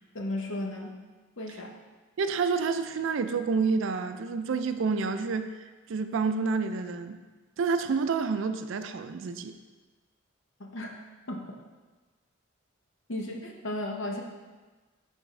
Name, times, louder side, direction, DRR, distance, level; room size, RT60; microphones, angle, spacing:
voice 1, 0.1-1.0 1.4-1.7 10.6-10.9 11.3-11.6 13.1-14.2, left 1 dB, 65° left, 1 dB, 0.8 m, -34 dB
voice 2, 2.2-5.5 5.9-7.2 7.6-9.5, right 4 dB, 65° right, 9 dB, 0.4 m, -28 dB
10.0 x 3.4 x 3.2 m, 1.3 s
head